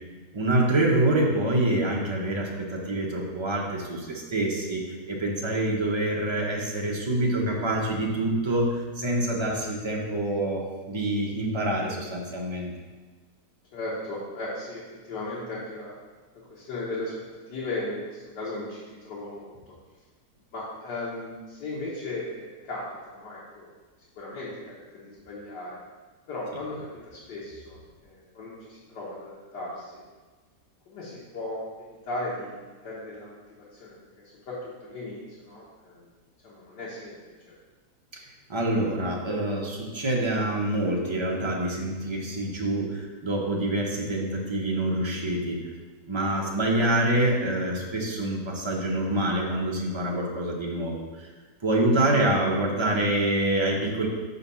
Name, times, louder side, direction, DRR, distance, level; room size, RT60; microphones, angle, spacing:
voice 1, 0.3-12.7 38.1-38.2 38.5-45.6 46.1-51.3 51.6-54.1, right 1 dB, 25° right, -2 dB, 0.7 m, -26 dB
voice 2, 13.7-16.0 16.5-19.8 20.5-23.7 24.2-25.8 26.3-30.0 30.9-36.1 36.4-37.2 37.5-37.6, left 2 dB, 80° left, -7 dB, 1.8 m, -37 dB
5.7 x 4.1 x 5.5 m, 1.3 s
omnidirectional pair, 1.8 m